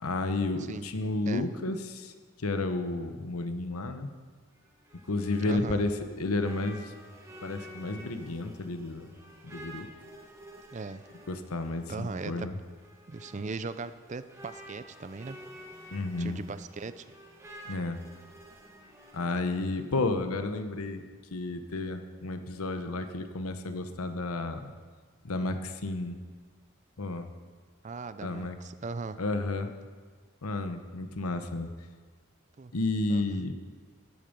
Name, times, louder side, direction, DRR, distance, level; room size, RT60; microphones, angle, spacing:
voice 1, 0.0-4.1 5.1-6.9 7.4-9.1 9.4-9.9 11.3-12.5 15.9-16.4 17.7-18.0 19.1-21.0 21.3-24.7 25.2-26.2 27.0-27.3 28.2-28.6 29.2-29.7 30.4-31.7 32.7-33.5, left 2 dB, 90° left, 8 dB, 1.0 m, -32 dB
voice 2, 0.6-0.9 1.3-1.5 5.5-5.8 10.7-11.1 11.9-12.5 13.1-15.4 16.2-17.1 27.8-29.2 32.6-32.7 33.1-33.4, right 4 dB, 35° right, 13 dB, 0.4 m, -38 dB
sound 1, 4.5-19.8, right 1 dB, 15° right, 1.6 m, -50 dB
14.5 x 8.8 x 5.3 m, 1.5 s
head